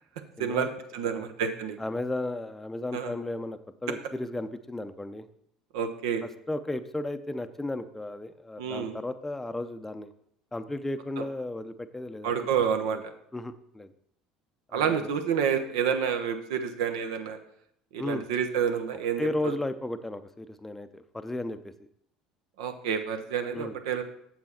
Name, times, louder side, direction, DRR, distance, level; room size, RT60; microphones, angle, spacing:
voice 1, 0.4-0.7 1.1-1.3 1.8-5.3 6.5-10.1 10.5-12.3 12.9-13.0 13.3-13.9 14.7-15.1 18.0-18.3 19.2-21.7 23.5-23.8, left 2 dB, 10° left, 10 dB, 0.6 m, -34 dB
voice 2, 0.9-1.8 2.9-3.1 5.7-6.2 8.6-9.0 11.2-11.3 12.2-13.0 14.7-17.4 17.9-19.5 22.6-24.0, right 7 dB, 65° right, 8 dB, 0.8 m, -29 dB
7.6 x 7.1 x 4.3 m, 0.70 s
figure-of-eight pair, 65°, 3 cm